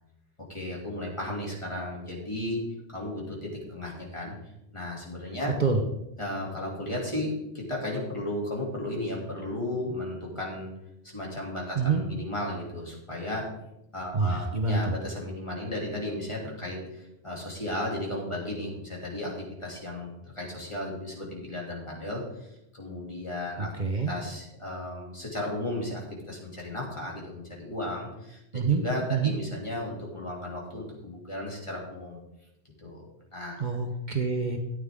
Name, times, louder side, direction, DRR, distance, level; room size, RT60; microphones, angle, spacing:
voice 1, 0.5-2.6 2.9-4.3 4.7-5.5 6.2-10.7 11.1-13.5 13.9-22.2 22.7-23.7 24.1-28.4 28.7-32.2 32.8-33.6, left 1 dB, 25° left, -3 dB, 2.8 m, -34 dB
voice 2, 14.1-14.9 23.6-24.1 28.5-28.8 29.1-29.3 33.6-34.6, right 4 dB, 45° right, 3 dB, 1.1 m, -26 dB
13.5 x 9.2 x 3.7 m, 0.87 s
omnidirectional pair, 1.1 m